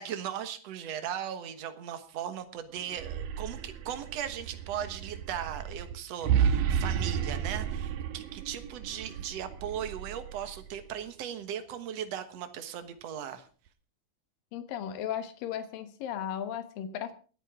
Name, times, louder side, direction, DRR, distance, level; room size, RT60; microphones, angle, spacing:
voice 1, 0.0-13.4, right 9 dB, 60° right, 9 dB, 2.0 m, -38 dB
sound 1, 2.8-10.9, right 8 dB, 80° right, 2.8 m, -32 dB
voice 2, 14.5-17.1, left 9 dB, 75° left, 9 dB, 3.0 m, -36 dB
27.5 x 9.3 x 3.6 m, 0.38 s
omnidirectional pair, 4.1 m